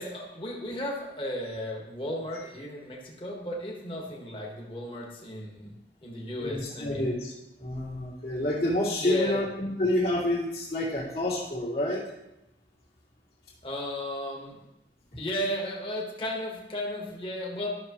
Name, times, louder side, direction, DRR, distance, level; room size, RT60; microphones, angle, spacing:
voice 1, 0.0-5.7 6.0-7.1 9.0-9.4 13.6-14.6 15.2-17.7, equal, 30° left, -2 dB, 1.5 m, -34 dB
voice 2, 6.4-7.3 7.6-12.0, left 1 dB, 55° left, -10 dB, 2.5 m, -28 dB
12.5 x 6.4 x 3.1 m, 0.91 s
head